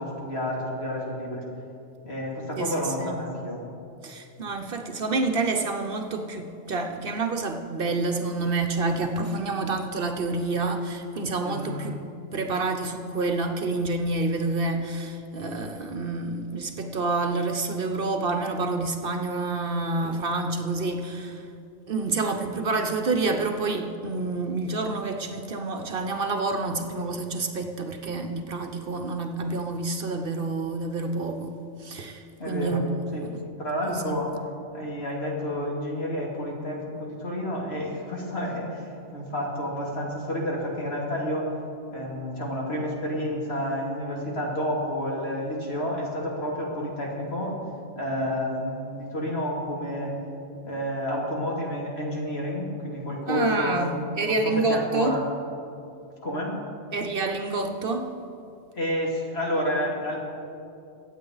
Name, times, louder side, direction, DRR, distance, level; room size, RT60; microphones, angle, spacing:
voice 1, 0.0-1.4 2.0-3.6 11.4-11.7 32.4-32.8 33.1-33.3 33.6-34.3 34.7-41.5 41.9-47.5 48.0-50.1 50.6-53.8 54.2-55.2 56.2-56.6 58.7-60.2, equal, 60° left, -3 dB, 2.6 m, -30 dB
voice 2, 2.6-3.2 4.0-12.0 12.3-21.5 21.9-33.3 33.9-34.2 53.3-55.2 56.9-58.1, right 3 dB, 55° right, 6 dB, 0.9 m, -28 dB
24.0 x 8.4 x 3.9 m, 2.6 s
omnidirectional pair, 1.2 m